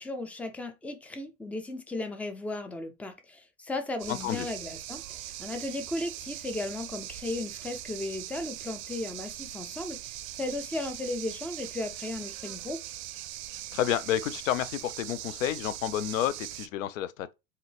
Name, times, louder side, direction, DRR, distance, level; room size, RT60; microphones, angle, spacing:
voice 1, 0.0-12.8, left 2 dB, 5° left, 0.5 m, -36 dB
sound 1, 4.0-16.7, right 14 dB, 55° right, 0.5 m, -41 dB
voice 2, 4.1-4.5 13.7-17.3, left 11 dB, 75° left, 0.5 m, -30 dB
3.8 x 2.7 x 3.3 m
hypercardioid pair, 95°, 40 cm